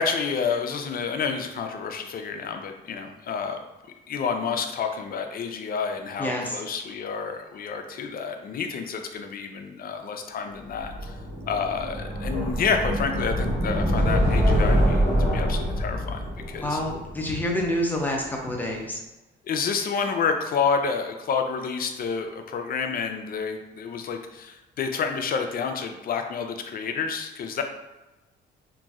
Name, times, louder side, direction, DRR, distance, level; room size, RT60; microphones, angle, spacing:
voice 1, 0.0-3.6 4.1-10.9 11.5-15.1 15.3-16.2 16.5-16.8 19.5-27.6, left 5 dB, 50° left, 5 dB, 0.4 m, -29 dB
voice 2, 6.2-6.6 16.6-19.0, left 1 dB, 10° left, -1 dB, 0.6 m, -28 dB
sound 1, 10.7-17.8, equal, 55° right, 1.3 m, -25 dB
2.9 x 2.6 x 2.4 m, 1.1 s
cardioid pair, 90°, 20 cm